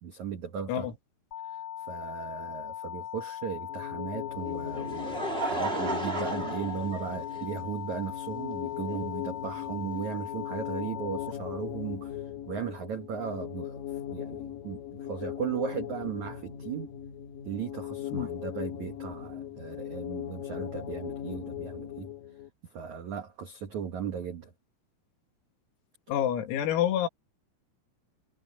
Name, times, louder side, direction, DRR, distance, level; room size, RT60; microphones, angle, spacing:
voice 1, 0.0-0.9 1.4-13.8 14.1-16.9 17.4-22.1 22.6-24.5, right 7 dB, 85° right, 1.6 m, -37 dB
sound 1, 1.3-11.3, left 9 dB, 40° left, 3.0 m, -39 dB
sound 2, 3.7-22.5, left 11 dB, 60° left, 2.5 m, -39 dB
Laughter, 4.4-7.7 8.5-8.6 10.1-10.2, right 2 dB, 20° right, 1.7 m, -34 dB
voice 2, 26.1-27.1, left 10 dB, 85° left, 4.9 m, -27 dB
omnidirectional pair, 6.0 m